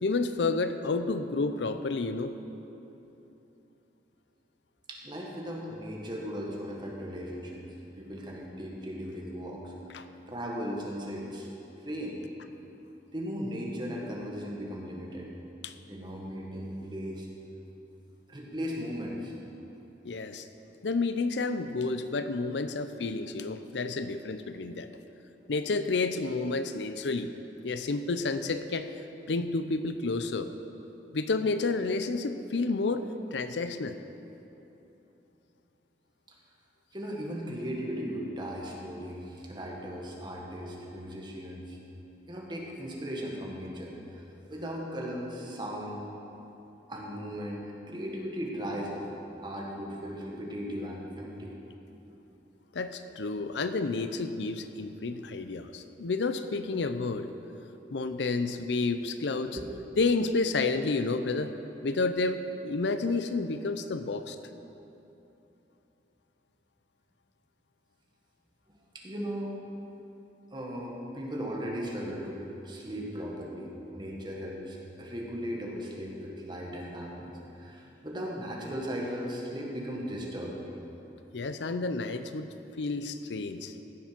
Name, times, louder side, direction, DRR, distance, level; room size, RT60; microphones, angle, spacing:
voice 1, 0.0-2.4 9.9-10.0 15.6-15.7 20.0-20.5 20.8-24.9 25.5-27.3 27.6-28.9 29.3-30.5 31.1-34.0 52.7-57.3 57.9-59.6 60.0-61.5 61.8-64.4 81.3-83.7, left 3 dB, 85° left, 10 dB, 0.6 m, -30 dB
voice 2, 4.9-7.6 8.0-9.6 10.3-11.5 11.8-12.2 13.1-15.3 15.9-17.3 18.3-19.3 36.9-41.8 42.3-44.2 44.5-46.0 46.9-49.1 49.4-51.5 52.1-52.2 59.5-59.6 68.9-69.5 70.5-77.3 77.6-80.6 81.2-81.3, equal, 25° right, -2 dB, 1.7 m, -37 dB
15.5 x 7.0 x 6.1 m, 3.0 s
head